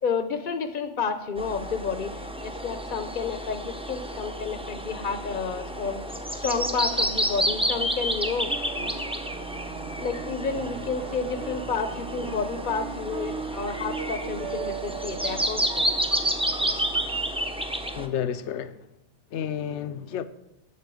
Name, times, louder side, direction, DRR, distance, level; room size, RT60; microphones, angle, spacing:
voice 1, 0.0-6.0 6.3-8.5 8.8-9.0 10.0-15.9, left 5 dB, 50° left, 0.8 m, -30 dB
sound 1, 1.4-18.1, right 1 dB, 5° right, 0.7 m, -30 dB
sound 2, 8.5-17.2, right 7 dB, 80° right, 1.1 m, -38 dB
voice 2, 18.0-18.9 19.3-20.2, left 9 dB, 75° left, 1.0 m, -31 dB
8.6 x 8.2 x 7.5 m
omnidirectional pair, 1.2 m